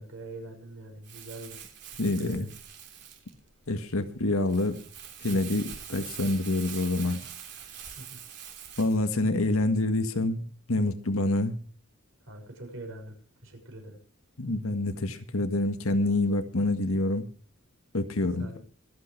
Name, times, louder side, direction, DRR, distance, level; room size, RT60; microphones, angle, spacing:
voice 1, 0.0-1.6 1.9-2.4 7.9-8.2 12.2-13.1 13.4-14.0 18.4-18.6, right 2 dB, 70° right, 6.7 m, -43 dB
Crumpling crinkling, 1.0-9.0, right 8 dB, 55° right, 3.2 m, -44 dB
voice 2, 2.0-2.5 3.7-4.8 5.2-7.2 8.8-10.4 10.7-11.6 14.4-17.2 17.9-18.6, left 2 dB, 90° left, 1.7 m, -27 dB
26.0 x 8.6 x 3.4 m
head